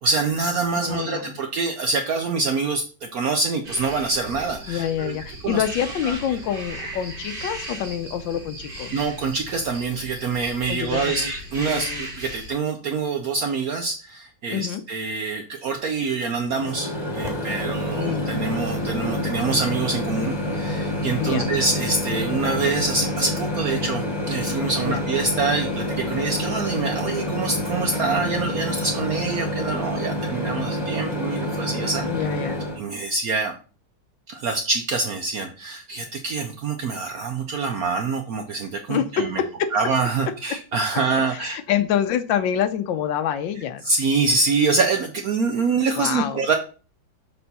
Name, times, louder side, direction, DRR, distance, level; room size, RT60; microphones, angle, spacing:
voice 1, 0.0-5.2 5.4-5.6 6.0-6.4 8.9-32.3 32.8-33.6 34.3-39.4 39.7-41.6 43.8-46.5, right 4 dB, 70° right, 4 dB, 0.8 m, -25 dB
voice 2, 0.8-1.4 4.7-8.9 10.7-11.3 11.6-12.1 14.5-14.8 18.0-18.4 21.2-21.5 24.8-25.0 32.0-32.6 38.9-39.7 40.5-40.6 41.4-43.9 46.0-46.4, left 9 dB, 75° left, 11 dB, 1.3 m, -26 dB
sound 1, 3.6-12.5, right 1 dB, 30° right, 1.5 m, -36 dB
Microwave oven, 16.5-32.8, left 1 dB, 15° left, 1.2 m, -27 dB
6.8 x 4.3 x 4.1 m, 0.38 s
omnidirectional pair, 2.2 m